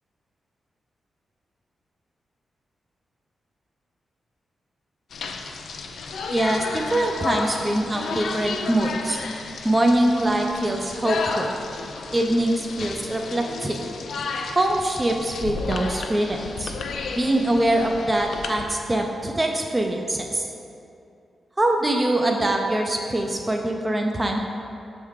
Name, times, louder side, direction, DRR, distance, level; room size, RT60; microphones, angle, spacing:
sound 1, 5.1-18.6, left 4 dB, 70° left, 0.4 m, -32 dB
voice 1, 6.3-9.2 9.6-11.5 12.1-13.8 14.6-16.7 17.2-20.4 21.6-24.4, right 1 dB, 15° right, 2 dB, 0.3 m, -23 dB
6.5 x 3.5 x 4.7 m, 2.6 s
wide cardioid pair, 175°, 0 cm